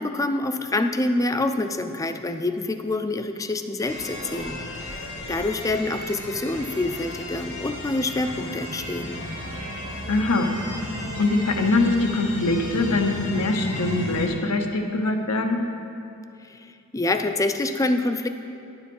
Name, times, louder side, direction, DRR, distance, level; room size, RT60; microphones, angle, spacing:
voice 1, 0.0-5.0 5.3-9.2 16.5-18.3, left 2 dB, 15° left, 8 dB, 0.4 m, -26 dB
sound 1, 3.8-14.3, left 1 dB, 75° left, 1.9 m, -34 dB
voice 2, 10.1-10.5 11.2-15.6, left 2 dB, 90° left, 3 dB, 0.9 m, -23 dB
10.5 x 7.1 x 5.4 m, 2.6 s
head